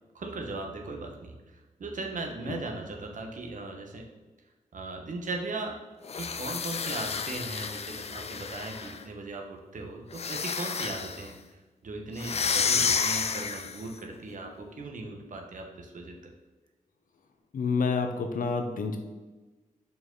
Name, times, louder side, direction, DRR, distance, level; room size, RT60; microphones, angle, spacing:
voice 1, 0.1-4.0 4.7-5.8 6.1-16.2, right 2 dB, 65° right, 2 dB, 1.1 m, -38 dB
sound 1, 6.0-9.0 10.1-11.3 12.2-13.9, left 5 dB, 50° left, 0.4 m, -30 dB
voice 2, 17.5-19.0, left 4 dB, 80° left, 6 dB, 0.8 m, -28 dB
5.5 x 4.7 x 3.9 m, 1.2 s
cardioid pair, 70°, 14 cm